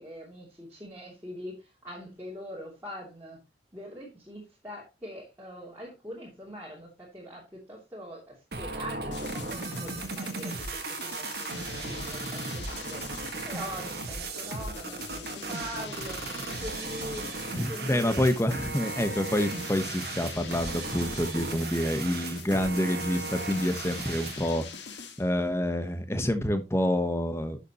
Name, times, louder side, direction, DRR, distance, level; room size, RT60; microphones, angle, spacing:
voice 1, 0.0-3.4 3.7-13.1 13.4-18.2, equal, 15° right, -7 dB, 2.8 m, -43 dB
sound 1, 8.5-24.5, right 3 dB, 60° right, 1.8 m, -36 dB
sound 2, 9.1-25.3, left 5 dB, 75° left, 1.7 m, -43 dB
voice 2, 17.5-24.6 25.2-27.6, left 1 dB, 15° left, 8 dB, 1.1 m, -27 dB
11.5 x 6.8 x 3.0 m, 0.26 s
head